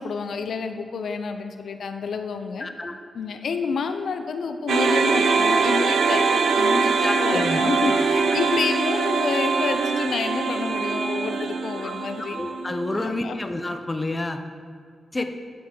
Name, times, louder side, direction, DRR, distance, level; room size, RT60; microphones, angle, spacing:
voice 1, 0.0-2.7 3.1-12.4 13.0-13.4 15.2-15.3, left 5 dB, 75° left, 7 dB, 0.5 m, -29 dB
voice 2, 2.6-3.0 7.0-7.6 11.8-11.9 12.3-14.4 15.1-15.2, left 2 dB, 25° left, 7 dB, 0.6 m, -29 dB
sound 1, 4.7-13.0, right 4 dB, 85° right, 0.6 m, -23 dB
8.8 x 7.9 x 3.9 m, 2.2 s
cardioid pair, 90°, 0 cm